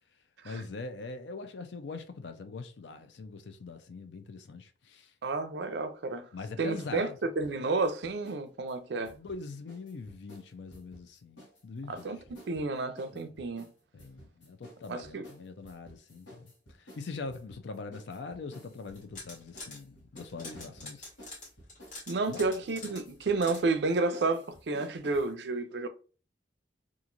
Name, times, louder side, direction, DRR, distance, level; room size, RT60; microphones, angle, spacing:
voice 1, 0.4-5.1 6.3-7.2 9.1-12.1 13.1-13.3 13.9-16.5 16.8-21.1 22.3-22.6, left 4 dB, 75° left, 0.5 m, -42 dB
voice 2, 5.2-6.3 6.6-9.1 11.9-13.7 14.9-15.2 22.1-25.9, right 3 dB, 70° right, 0.4 m, -31 dB
sound 1, 7.4-8.4 8.7-11.6 11.9-25.3, equal, 90° left, 1.2 m, -54 dB
sound 2, 18.9-19.8 20.2-23.6, left 2 dB, 45° left, 1.4 m, -45 dB
2.9 x 2.4 x 2.5 m
head